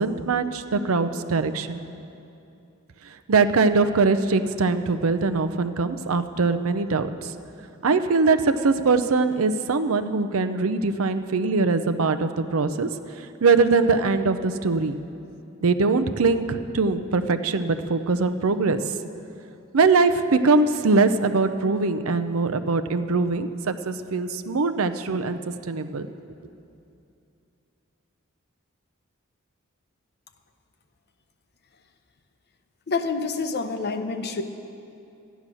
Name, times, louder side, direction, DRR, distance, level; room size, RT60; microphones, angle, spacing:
voice 1, 0.0-1.9 3.3-7.3 7.8-12.9 13.4-14.9 15.6-18.8 19.7-25.4 25.7-26.1, right 4 dB, 75° right, 9 dB, 0.6 m, -22 dB
voice 2, 32.9-34.4, left 4 dB, 50° left, 8 dB, 0.8 m, -27 dB
14.0 x 10.5 x 6.2 m, 2.7 s
head